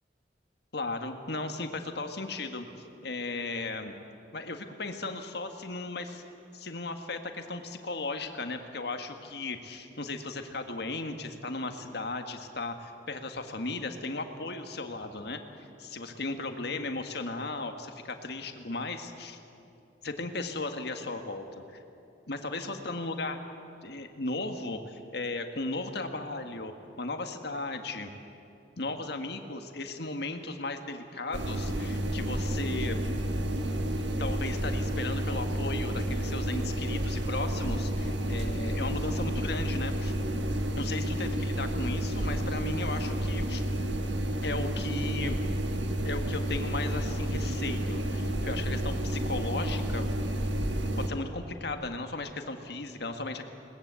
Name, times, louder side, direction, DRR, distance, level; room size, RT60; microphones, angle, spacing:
voice 1, 0.7-2.7 3.0-3.9 4.3-6.2 6.5-15.4 15.8-19.4 20.0-21.8 22.3-23.4 23.8-26.7 27.0-28.1 28.8-33.0 34.2-40.1 40.8-43.7 44.4-45.4 46.0-50.0 51.1-53.4, left 3 dB, 65° left, 6 dB, 1.7 m, -36 dB
sound 1, 31.3-51.1, right 1 dB, 85° right, 1.7 m, -30 dB
21.5 x 19.5 x 8.4 m, 2.7 s
head